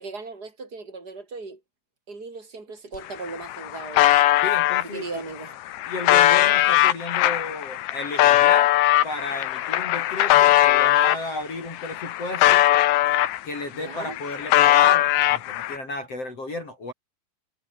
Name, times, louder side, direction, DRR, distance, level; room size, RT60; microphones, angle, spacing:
voice 1, 0.0-1.6 2.1-4.2 4.8-5.6 13.7-14.2, right 3 dB, 15° right, 7.6 m, -37 dB
sound 1, 2.9-3.0 3.3-4.8 5.5-11.2 11.7-13.6 13.9-15.8, left 14 dB, 70° left, 3.2 m, -19 dB
voice 2, 4.4-5.2 5.9-8.7 9.0-12.7 13.4-16.9, left 2 dB, 30° left, 5.1 m, -33 dB
omnidirectional pair, 5.9 m